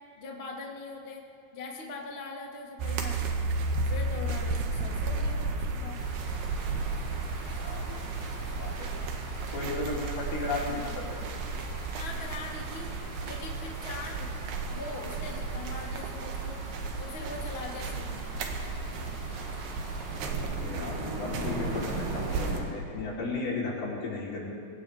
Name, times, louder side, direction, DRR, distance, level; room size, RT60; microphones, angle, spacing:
voice 1, 0.2-1.2 1.5-3.5 3.8-6.0 11.9-12.9 13.2-14.3 14.7-16.6 17.0-18.2, left 3 dB, 35° left, -1 dB, 1.0 m, -41 dB
sound 1, 2.8-22.6, right 3 dB, 80° right, 3.3 m, -33 dB
sound 2, 5.9-22.6, equal, 35° right, 5.2 m, -42 dB
voice 2, 7.3-8.3 8.6-8.9 9.5-11.2 20.5-24.5, left 3 dB, 80° left, -5 dB, 5.7 m, -35 dB
23.0 x 18.0 x 3.5 m, 2.8 s
omnidirectional pair, 4.4 m